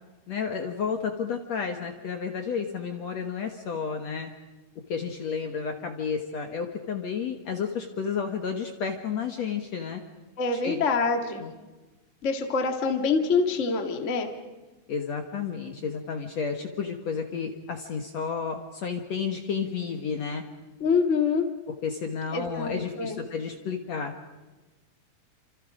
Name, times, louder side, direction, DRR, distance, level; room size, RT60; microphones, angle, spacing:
voice 1, 0.3-4.3 4.9-10.0 10.5-10.8 11.2-11.5 14.9-20.4 21.8-24.1, left 6 dB, 55° left, 4 dB, 2.1 m, -31 dB
voice 2, 10.4-11.4 12.2-14.3 20.8-21.4 22.3-23.2, left 4 dB, 30° left, 4 dB, 1.6 m, -25 dB
29.5 x 27.0 x 5.1 m, 1.2 s
omnidirectional pair, 4.4 m